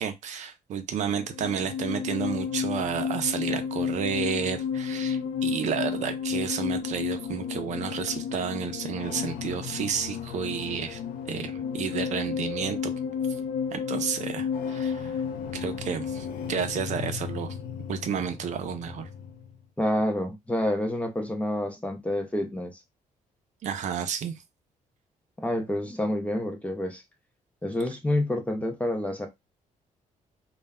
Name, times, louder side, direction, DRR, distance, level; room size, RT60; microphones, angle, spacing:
voice 1, 0.0-11.0 11.3-12.9 13.7-15.2 15.5-17.5 17.9-19.1 23.6-24.4, right 7 dB, 60° right, 0.5 m, -31 dB
sound 1, 1.1-19.6, left 7 dB, 85° left, 0.5 m, -32 dB
voice 2, 19.8-22.8 25.4-27.0 27.6-29.3, left 1 dB, 10° left, 0.4 m, -28 dB
2.2 x 2.1 x 3.4 m
cardioid pair, 160°, 14 cm